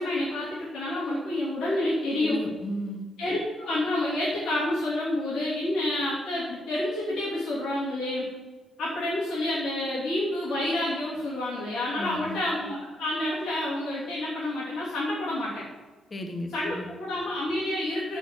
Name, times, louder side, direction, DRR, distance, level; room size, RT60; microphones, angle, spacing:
voice 1, 0.0-2.4 3.2-8.3 8.8-15.6 16.5-18.2, left 1 dB, 75° left, -9 dB, 3.0 m, -29 dB
voice 2, 2.2-3.1 11.9-12.4 16.1-16.8, equal, 35° left, 4 dB, 1.4 m, -34 dB
7.0 x 6.8 x 7.5 m, 1.3 s
hypercardioid pair, 45°, 0 cm